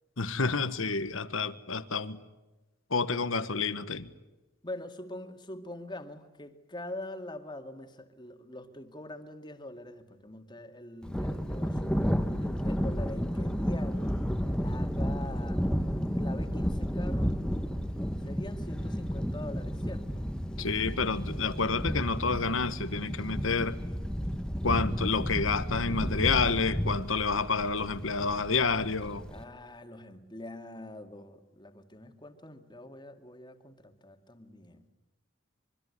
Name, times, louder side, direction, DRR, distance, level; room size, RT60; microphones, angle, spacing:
voice 1, 0.2-2.2 2.9-4.1 20.6-23.8 24.6-29.2, left 4 dB, 85° left, 1.4 m, -29 dB
voice 2, 4.6-11.9 12.4-14.1 14.6-15.7 16.1-17.3 18.2-20.3 29.3-34.9, left 1 dB, 25° left, 2.1 m, -44 dB
Thunder, 11.0-29.4, equal, 5° left, 1.2 m, -32 dB
25.5 x 24.0 x 9.8 m
head